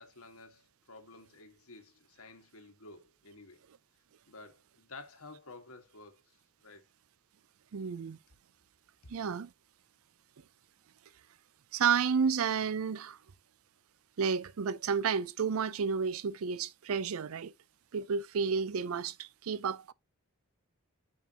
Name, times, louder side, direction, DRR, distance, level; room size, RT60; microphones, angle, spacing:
voice 1, 0.0-3.6 4.3-6.8, left 3 dB, 75° left, 1.8 m, -52 dB
voice 2, 7.7-8.2 9.1-9.5 11.7-13.2 14.2-17.5 17.9-19.9, right 6 dB, 75° right, 0.5 m, -31 dB
7.1 x 6.2 x 2.9 m
head